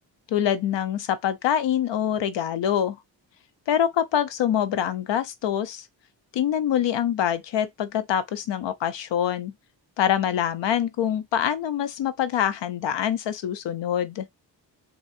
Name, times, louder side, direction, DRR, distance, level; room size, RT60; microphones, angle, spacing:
voice 1, 0.3-3.0 3.7-5.9 6.3-9.5 10.0-14.3, left 9 dB, 80° left, 0.8 m, -25 dB
3.7 x 2.9 x 4.2 m
cardioid pair, 65°, 43 cm